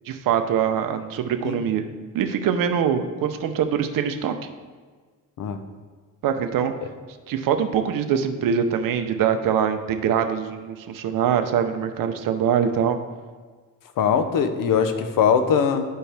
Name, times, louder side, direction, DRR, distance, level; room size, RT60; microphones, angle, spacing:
voice 1, 0.1-1.9 2.1-4.3 6.2-6.7 7.3-13.0, right 8 dB, 85° right, 8 dB, 0.7 m, -23 dB
voice 2, 14.0-15.9, left 7 dB, 80° left, 8 dB, 0.7 m, -21 dB
11.0 x 4.5 x 3.4 m, 1.5 s
cardioid pair, 105°, 33 cm